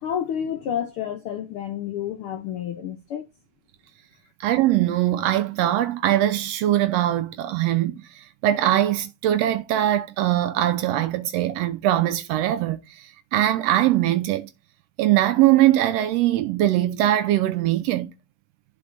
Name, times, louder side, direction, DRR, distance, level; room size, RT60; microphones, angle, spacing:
voice 1, 0.0-3.3, left 9 dB, 80° left, 1.2 m, -30 dB
voice 2, 4.4-14.5 15.0-18.1, right 13 dB, 80° right, 1.4 m, -21 dB
11.0 x 4.5 x 2.5 m
omnidirectional pair, 3.4 m